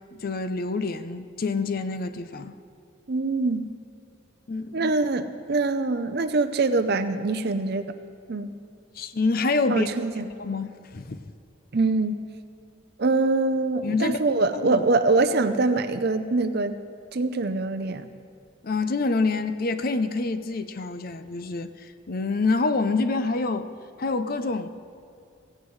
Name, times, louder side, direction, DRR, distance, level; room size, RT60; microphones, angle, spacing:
voice 1, 0.1-2.5 4.5-4.9 9.0-9.9 10.4-11.2 13.8-14.8 18.6-23.7 24.0-24.7, left 3 dB, 45° left, 11 dB, 0.5 m, -27 dB
voice 2, 3.1-3.8 4.7-7.9 8.3-8.6 9.7-10.3 11.7-12.3 13.0-16.8 17.1-18.1, right 3 dB, 50° right, 10 dB, 0.6 m, -24 dB
16.5 x 16.0 x 3.2 m, 2.6 s
head